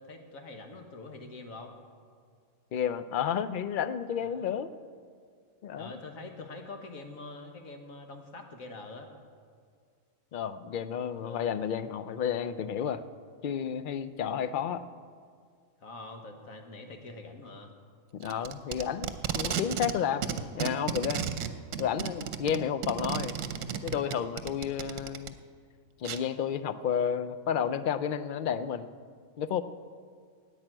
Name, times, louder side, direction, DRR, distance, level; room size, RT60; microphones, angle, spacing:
voice 1, 0.0-1.7 4.2-4.6 5.8-9.1 11.2-11.5 15.8-17.7, left 3 dB, 80° left, 4 dB, 1.7 m, -45 dB
voice 2, 2.7-4.7 5.6-6.0 10.3-13.0 13.4-14.8 18.1-20.3 20.5-21.3 21.8-23.4 23.8-25.4 26.0-28.9 29.4-29.6, left 8 dB, 60° left, 13 dB, 0.5 m, -31 dB
Packing tape duct tape, 18.2-20.0 20.2-25.3 26.1-26.2, right 8 dB, 70° right, 1.1 m, -33 dB
10.5 x 8.7 x 8.9 m, 2.1 s
omnidirectional pair, 1.4 m